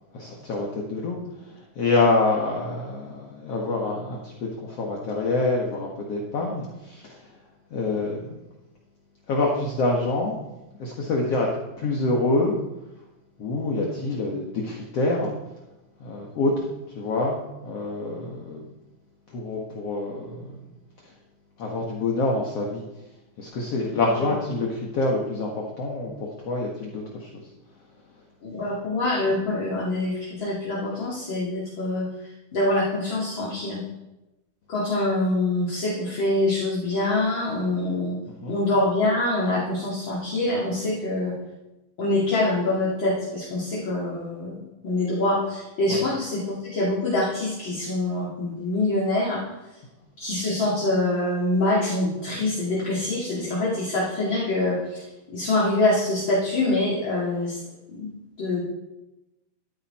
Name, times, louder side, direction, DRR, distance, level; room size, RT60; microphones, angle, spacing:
voice 1, 0.1-7.4 7.7-8.4 9.3-10.4 10.7-11.5 11.8-12.6 13.4-15.3 16.0-16.5 17.0-17.4 17.6-18.7 19.3-20.6 21.0-21.1 21.6-22.8 23.4-27.3 38.4-38.6 45.9-46.0, left 2 dB, 55° left, -2 dB, 2.4 m, -26 dB
voice 2, 28.4-32.1 32.5-33.8 34.7-38.2 38.5-41.3 42.0-44.6 44.8-49.4 50.2-57.6 57.9-58.1 58.4-58.6, left 2 dB, 35° left, -5 dB, 3.1 m, -25 dB
14.0 x 12.5 x 4.4 m, 1.0 s
omnidirectional pair, 3.8 m